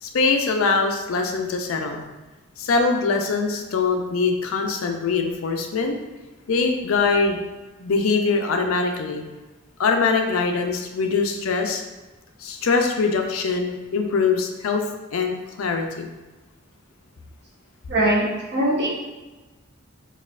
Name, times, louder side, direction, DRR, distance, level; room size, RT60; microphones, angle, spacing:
voice 1, 0.0-2.0 2.6-6.0 6.5-7.4 7.8-9.3 9.8-11.8 12.4-14.8 15.1-16.1, left 4 dB, 90° left, 4 dB, 0.4 m, -23 dB
voice 2, 17.9-18.9, right 1 dB, 55° right, -5 dB, 0.9 m, -21 dB
4.1 x 2.4 x 2.4 m, 1.2 s
head